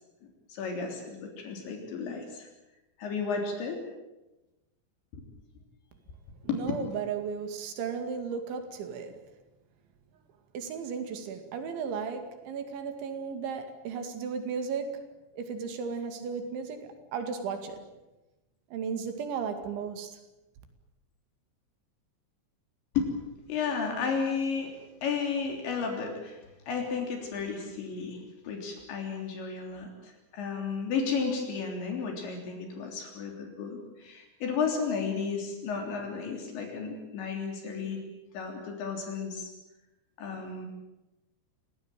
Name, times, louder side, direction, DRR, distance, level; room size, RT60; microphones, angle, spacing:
voice 1, 0.5-2.5 3.0-3.8 5.1-5.3 6.5-6.6 23.0-23.1 23.5-24.7 25.0-26.4 26.7-38.0 38.3-39.5 40.2-40.7, left 5 dB, 75° left, 5.7 m, -33 dB
voice 2, 6.4-9.2 10.5-15.1 15.4-17.9 18.7-20.2, right 6 dB, 80° right, 4.6 m, -35 dB
27.5 x 17.5 x 9.1 m
omnidirectional pair, 5.3 m